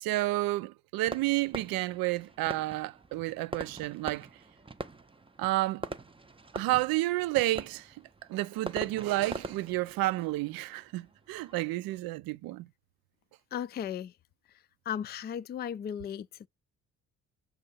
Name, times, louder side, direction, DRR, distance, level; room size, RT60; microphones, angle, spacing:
voice 1, 0.0-4.3 5.4-5.8 6.5-7.9 8.3-12.7, right 18 dB, 70° right, 0.5 m, -30 dB
Fireworks, 1.1-11.6, right 3 dB, 15° right, 0.6 m, -43 dB
voice 2, 13.5-14.1 14.9-16.5, left 9 dB, 30° left, 0.4 m, -36 dB
6.9 x 2.5 x 5.4 m
hypercardioid pair, 50°, 37 cm